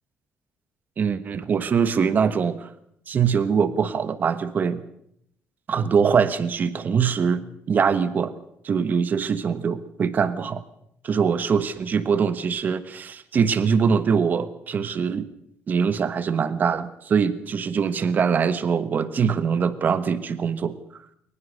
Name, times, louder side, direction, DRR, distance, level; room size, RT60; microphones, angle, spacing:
voice 1, 1.0-2.7 3.1-4.8 5.7-8.3 8.6-10.6 11.0-15.2 15.7-20.8, right 6 dB, 40° right, 13 dB, 1.3 m, -23 dB
21.5 x 20.0 x 6.6 m, 0.73 s
cardioid pair, 150°, 5 cm